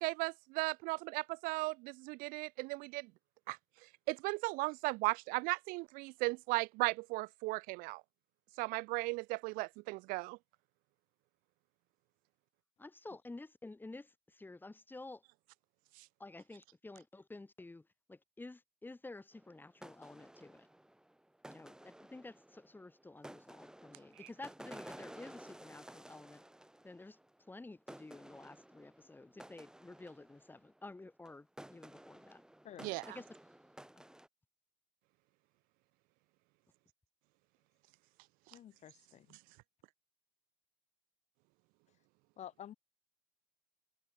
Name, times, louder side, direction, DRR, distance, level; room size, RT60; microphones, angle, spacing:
voice 1, 0.0-3.1 3.5-3.6 4.1-8.0 8.6-10.4 32.8-33.2, right 25 dB, 65° right, 0.5 m, -36 dB
voice 2, 12.8-15.2 16.2-20.7 21.5-26.4 26.8-27.2 27.5-32.4 33.1-33.4, left 2 dB, 10° left, 2.5 m, -51 dB
sound 1, 19.3-27.6 27.9-30.8 31.3-31.4 31.6-34.3, right 1 dB, 5° right, 3.1 m, -55 dB
voice 3, 38.5-39.4 42.4-42.7, left 10 dB, 45° left, 2.2 m, -51 dB
hypercardioid pair, 75°, 16 cm